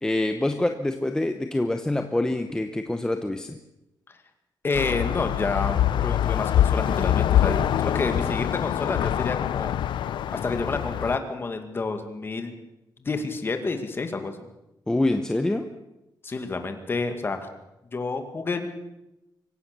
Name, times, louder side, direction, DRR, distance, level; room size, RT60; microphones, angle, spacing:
voice 1, 0.0-3.6 8.1-8.3 14.9-15.7, left 1 dB, 10° left, 6 dB, 0.9 m, -26 dB
voice 2, 4.6-9.7 10.3-12.6 13.0-14.5 16.2-17.5 17.9-18.7, left 3 dB, 30° left, 7 dB, 2.2 m, -29 dB
sound 1, 4.7-11.2, left 11 dB, 85° left, 0.6 m, -24 dB
25.0 x 16.5 x 6.9 m, 0.94 s
wide cardioid pair, 165°, 8 cm